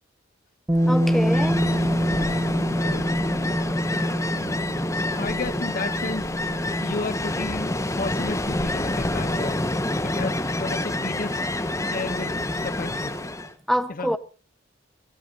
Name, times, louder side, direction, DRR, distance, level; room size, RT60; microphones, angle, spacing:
Ocean, 0.7-13.5, left 1 dB, 15° left, 1.3 m, -27 dB
Bass guitar, 0.7-6.9, equal, 15° right, 1.3 m, -25 dB
voice 1, 0.8-1.7 13.7-14.2, equal, ahead, 1.0 m, -25 dB
voice 2, 2.8-3.3 5.2-6.3 6.8-9.6 10.0-11.4 11.9-13.2 13.9-14.2, left 3 dB, 45° left, 0.6 m, -33 dB
25.0 x 15.5 x 2.7 m
head